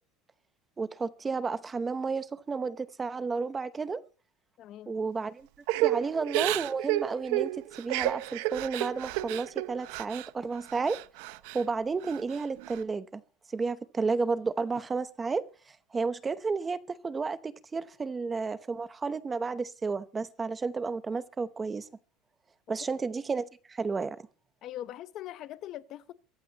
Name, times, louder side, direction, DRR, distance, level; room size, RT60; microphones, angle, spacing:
voice 1, 0.8-4.0 4.9-5.5 5.8-7.5 7.8-11.0 11.5-13.2 13.5-21.9 22.7-24.2, right 4 dB, 15° right, 0.8 m, -32 dB
voice 2, 4.6-4.9 22.7-22.8 24.6-26.1, left 12 dB, 40° left, 0.8 m, -41 dB
Crying sobbing / Breathing, 5.7-10.3 10.7-11.6 12.0-12.8, right 17 dB, 70° right, 0.7 m, -31 dB
22.5 x 15.0 x 2.9 m
cardioid pair, 160°, 0 cm